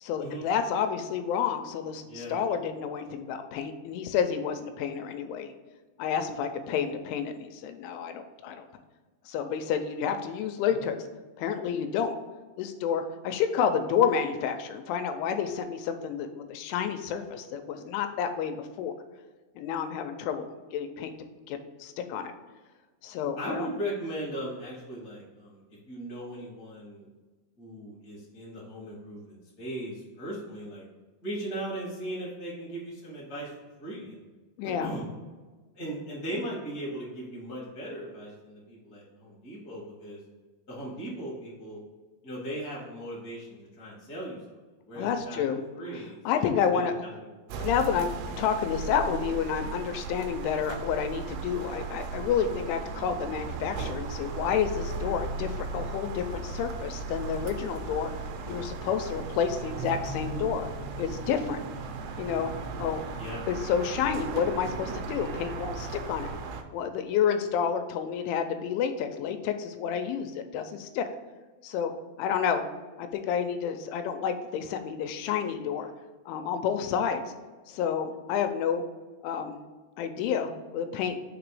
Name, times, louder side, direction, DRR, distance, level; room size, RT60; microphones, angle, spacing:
voice 1, 0.0-5.5 6.0-8.7 9.3-11.0 11.4-12.2 12.6-18.9 19.6-21.1 21.5-22.3 23.0-23.7 34.6-34.9 45.0-45.6 46.3-46.9 47.6-58.1 58.5-60.7 61.0-61.6 62.2-62.5 62.8-63.0 63.5-66.3 66.7-71.1 71.6-71.9 72.2-72.6 73.0-75.9 76.3-77.2 77.7-78.8 79.2-79.6 80.0-81.2, left 7 dB, 85° left, 7 dB, 3.0 m, -29 dB
voice 2, 2.0-2.4 10.7-10.9 23.4-25.6 25.9-27.0 27.6-30.9 31.2-33.5 33.8-34.3 34.6-35.1 35.7-40.2 40.7-41.8 42.2-44.6 44.9-45.4 45.7-46.4 46.7-47.2 47.5-47.7 63.1-63.5, right 1 dB, 70° left, -6 dB, 0.8 m, -38 dB
sound 1, 47.5-66.6, right 4 dB, 85° right, 2.4 m, -36 dB
6.7 x 3.0 x 4.8 m, 1.3 s
omnidirectional pair, 5.4 m